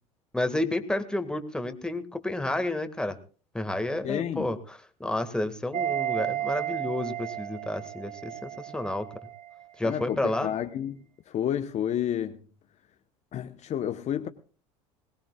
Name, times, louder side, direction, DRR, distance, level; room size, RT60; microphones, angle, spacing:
voice 1, 0.3-3.2 3.5-9.1 9.8-10.5, left 1 dB, 5° left, 1.9 m, -30 dB
voice 2, 4.0-4.5 9.8-11.0 11.3-12.4 13.3-14.3, left 10 dB, 45° left, 1.0 m, -30 dB
sound 1, 5.7-9.6 9.9-10.0, right 12 dB, 50° right, 2.2 m, -33 dB
21.5 x 18.5 x 2.4 m
hypercardioid pair, 75°, 16 cm